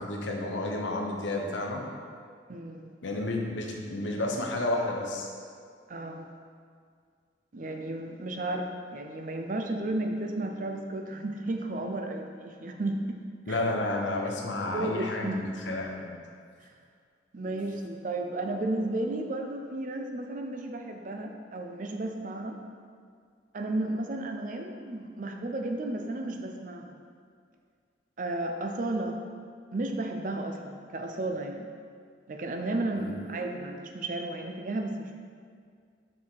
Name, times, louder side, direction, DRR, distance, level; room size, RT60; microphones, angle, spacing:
voice 1, 0.0-1.8 3.0-5.3 13.5-16.1 33.0-33.1, left 2 dB, 90° left, 0 dB, 0.9 m, -31 dB
voice 2, 2.5-2.9 5.9-6.3 7.5-13.2 13.5-13.6 14.6-15.4 16.6-16.7 17.3-22.6 23.5-27.0 28.2-29.2 29.7-31.7 32.3-35.2, right 2 dB, 45° right, 4 dB, 0.5 m, -33 dB
5.8 x 4.8 x 4.5 m, 2.1 s
head